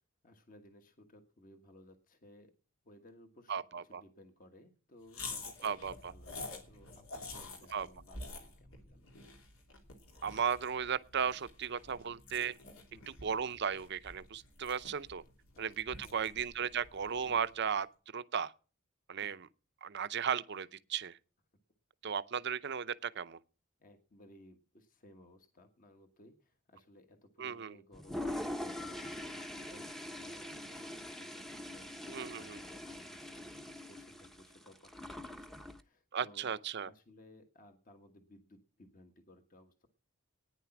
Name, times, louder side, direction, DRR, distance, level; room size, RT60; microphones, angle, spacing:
voice 1, 0.2-2.5 2.8-3.5 3.9-9.1 12.9-13.1 15.5-15.6 15.9-16.3 17.2-17.6 19.2-19.3 23.8-39.9, left 1 dB, 40° left, 1.4 m, -60 dB
voice 2, 3.5-4.0 5.6-6.1 7.7-7.9 10.2-12.6 13.1-15.2 15.6-17.9 18.1-18.5 19.1-19.5 19.8-21.2 22.0-23.4 27.4-27.8 32.1-32.6 36.1-36.9, right 7 dB, 55° right, 0.6 m, -36 dB
sound 1, 5.1-17.6, left 3 dB, 80° left, 2.8 m, -49 dB
Toilet flush, 27.9-35.8, left 1 dB, ahead, 0.8 m, -43 dB
14.5 x 9.8 x 5.9 m
head